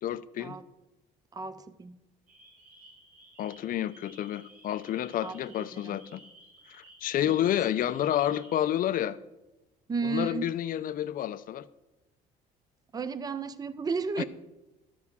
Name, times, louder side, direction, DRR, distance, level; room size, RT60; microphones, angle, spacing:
voice 1, 0.0-0.6 3.4-6.2 6.7-9.2 10.0-11.7 14.2-14.3, left 11 dB, 55° left, 0.6 m, -30 dB
voice 2, 1.3-2.0 5.2-6.0 7.3-7.5 9.9-10.5 12.9-14.2, right 4 dB, 20° right, 0.6 m, -34 dB
sound 1, 2.3-8.6, right 2 dB, 60° right, 4.0 m, -55 dB
12.5 x 4.8 x 7.3 m
cardioid pair, 110°, 17 cm